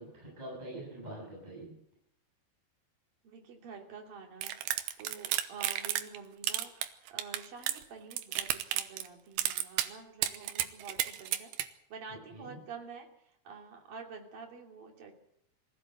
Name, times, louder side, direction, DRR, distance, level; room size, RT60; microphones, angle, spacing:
voice 1, 0.0-1.8 12.3-12.6, right 1 dB, 10° right, -4 dB, 7.4 m, -44 dB
voice 2, 3.2-15.2, right 5 dB, 55° right, 2 dB, 4.3 m, -48 dB
sound 1, 4.4-6.2 6.4-7.8 8.1-9.1 9.4-9.9 10.2-11.7, right 12 dB, 80° right, 3.1 m, -32 dB
22.0 x 16.0 x 7.9 m, 0.75 s
omnidirectional pair, 4.9 m